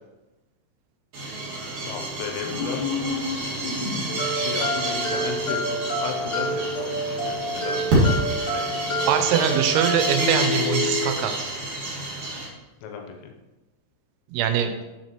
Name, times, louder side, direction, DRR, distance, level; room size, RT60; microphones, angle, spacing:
sound 1, 1.1-12.5, right 1 dB, 55° right, 2.2 m, -29 dB
voice 1, 1.8-2.9 4.1-7.9 8.5-9.2 12.8-13.3, left 7 dB, 80° left, 3 dB, 3.1 m, -35 dB
sound 2, 2.4-4.4, left 4 dB, 65° left, 3.0 m, -30 dB
sound 3, 4.1-11.1, equal, 45° left, 1.4 m, -28 dB
voice 2, 9.1-11.3 14.3-14.7, right 8 dB, 85° right, 7 dB, 3.3 m, -22 dB
7.2 x 6.1 x 2.9 m, 1.1 s
omnidirectional pair, 6.0 m